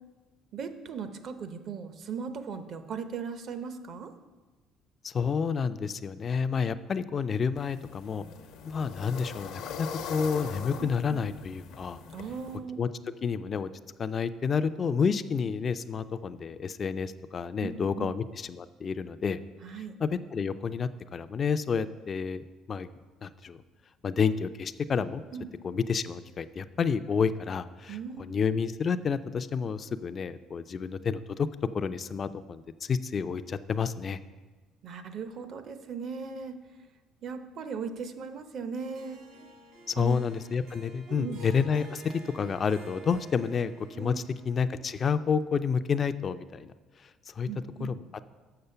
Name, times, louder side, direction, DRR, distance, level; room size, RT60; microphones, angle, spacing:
voice 1, 0.5-4.1 10.8-11.2 12.1-12.8 17.6-18.1 19.6-20.0 25.3-25.5 27.9-28.2 34.8-36.6 37.2-39.2 40.0-40.2 41.1-41.4 44.0-44.2 47.5-47.9, right 5 dB, 55° right, 9 dB, 0.7 m, -38 dB
voice 2, 5.0-8.2 8.6-12.0 12.8-12.9 13.2-13.7 14.0-19.4 20.0-22.9 23.2-23.6 24.0-25.2 25.6-31.5 31.7-34.2 39.9-43.7 44.0-46.7 47.3-47.5 47.8-48.0, left 6 dB, 40° left, 12 dB, 0.3 m, -30 dB
sound 1, 7.6-12.6, left 6 dB, 75° left, 0.7 m, -41 dB
Harp, 38.8-45.1, right 2 dB, 75° right, 2.4 m, -51 dB
6.8 x 6.4 x 5.6 m, 1.3 s
cardioid pair, 100°, 0 cm